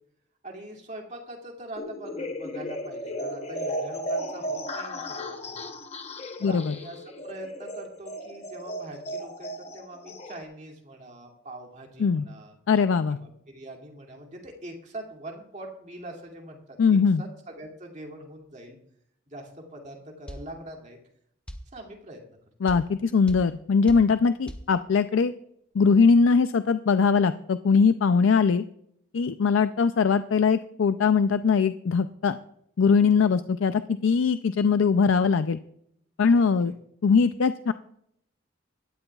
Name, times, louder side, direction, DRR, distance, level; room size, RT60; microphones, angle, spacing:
voice 1, 0.4-5.7 6.4-7.0 7.2-12.5 13.2-16.6 16.9-18.8 19.3-21.0 21.7-22.2 33.2-33.3 36.3-36.7, right 1 dB, 35° right, 1 dB, 2.4 m, -43 dB
sound 1, 1.7-10.4, equal, 30° left, 0.9 m, -35 dB
voice 2, 6.4-6.8 12.0-12.3 12.7-13.2 16.8-17.2 22.6-25.3 25.7-28.6 29.1-32.4 32.8-35.6 36.2-36.7 37.0-37.7, left 5 dB, 80° left, 11 dB, 0.4 m, -21 dB
sound 2, 20.3-20.5 21.5-21.7 22.7-22.9 23.3-23.5 23.9-24.1 24.5-24.7, equal, 5° left, 0.8 m, -38 dB
17.5 x 13.0 x 2.4 m, 0.73 s
head